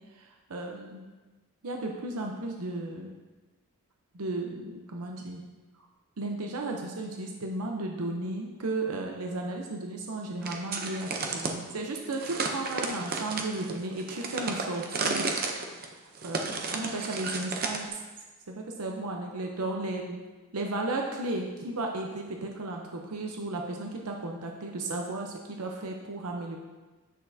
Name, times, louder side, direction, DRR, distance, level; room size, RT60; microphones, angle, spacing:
voice 1, 0.1-1.1 1.6-3.1 4.1-5.4 6.2-15.3 15.9-17.9 18.5-20.2 20.5-26.6, right 2 dB, 85° right, 1 dB, 0.7 m, -34 dB
sound 1, 10.4-11.6 12.1-17.9, right 4 dB, 40° right, 0.7 m, -33 dB
9.1 x 6.2 x 2.7 m, 1.2 s
head